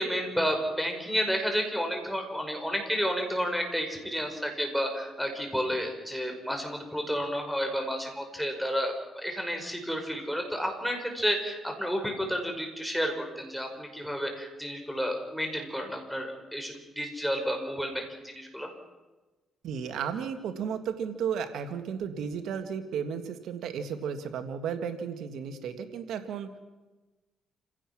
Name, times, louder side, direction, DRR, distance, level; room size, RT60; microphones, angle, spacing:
voice 1, 0.0-18.7, equal, ahead, 3 dB, 5.6 m, -31 dB
voice 2, 19.6-26.6, right 7 dB, 80° right, 8 dB, 1.8 m, -34 dB
28.5 x 17.0 x 6.1 m, 1.2 s
cardioid pair, 90°, 0 cm